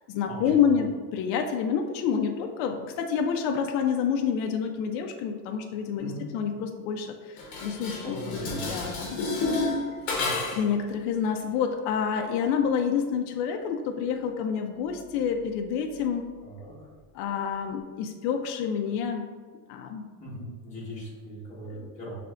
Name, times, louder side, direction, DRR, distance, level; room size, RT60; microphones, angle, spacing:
voice 1, 0.1-9.4 10.5-16.4 17.1-19.3 19.7-20.1 21.7-21.9, left 7 dB, 60° left, 4 dB, 0.5 m, -28 dB
Dishes pots and pans, 7.4-10.7, left 3 dB, 40° left, 1.0 m, -30 dB
voice 2, 8.0-8.6 10.1-10.4 16.4-16.7 20.2-22.1, equal, 15° left, -7 dB, 1.2 m, -39 dB
6.0 x 3.3 x 2.4 m, 1.5 s
cardioid pair, 165°, 48 cm